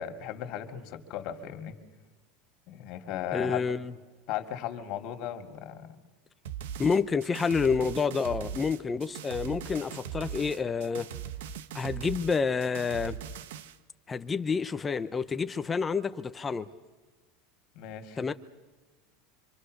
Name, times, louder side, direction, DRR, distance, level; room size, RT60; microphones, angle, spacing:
voice 1, 0.0-1.7 2.7-3.7 4.3-6.0 17.7-18.2, left 10 dB, 50° left, 2.6 m, -36 dB
voice 2, 3.3-3.9 6.8-11.1 11.7-13.2 14.1-16.7 18.2-18.3, left 5 dB, 15° left, 0.7 m, -29 dB
sound 1, 6.5-13.8, right 9 dB, 85° right, 1.1 m, -40 dB
26.0 x 26.0 x 6.6 m
supercardioid pair, 150°, 0 cm